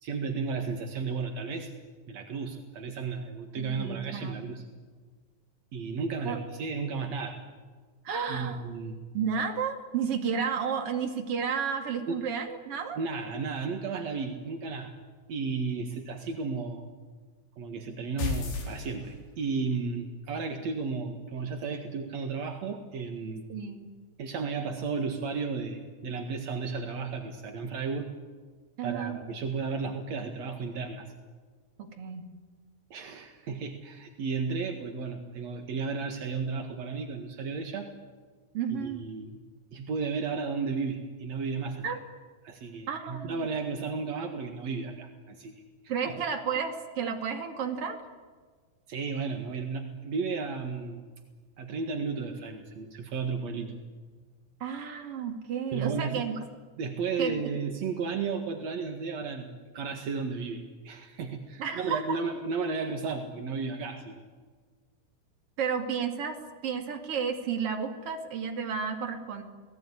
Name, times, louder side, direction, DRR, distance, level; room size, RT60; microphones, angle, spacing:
voice 1, 0.0-1.7 2.1-4.6 5.7-7.4 8.3-9.0 12.1-12.2 13.0-14.9 15.3-16.9 17.6-23.4 24.2-28.1 28.8-31.1 32.9-37.9 38.7-39.4 39.7-41.9 42.4-45.5 46.0-46.2 48.9-51.1 51.6-53.7 55.7-56.2 56.8-64.2, right 4 dB, 65° right, 5 dB, 1.7 m, -33 dB
voice 2, 3.5-4.5 6.2-6.4 8.0-8.6 9.1-13.0 23.5-23.9 28.8-29.2 31.8-32.3 38.5-39.0 41.8-42.0 42.9-43.4 45.9-48.0 54.6-56.4 57.2-57.3 61.6-62.2 65.6-69.4, right 6 dB, 40° right, 4 dB, 2.4 m, -32 dB
sound 1, 18.2-19.5, left 4 dB, 65° left, 6.7 m, -32 dB
29.5 x 19.0 x 9.8 m, 1.5 s
omnidirectional pair, 5.9 m